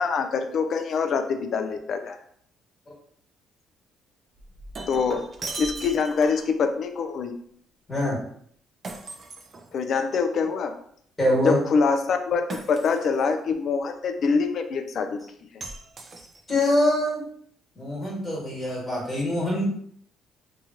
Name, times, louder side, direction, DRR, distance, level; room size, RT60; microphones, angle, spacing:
voice 1, 0.0-2.2 4.9-5.2 5.6-7.3 9.7-10.7 11.4-15.2, left 5 dB, 55° left, 7 dB, 0.4 m, -25 dB
Shatter, 4.4-6.6 8.8-10.1 12.5-13.3 15.6-16.7, right 3 dB, 35° right, 0.4 m, -38 dB
voice 2, 7.9-8.2 11.2-11.6 16.5-17.2 17.7-19.6, left 1 dB, 20° left, -5 dB, 1.5 m, -24 dB
2.9 x 2.4 x 2.6 m, 0.63 s
cardioid pair, 115°, 0 cm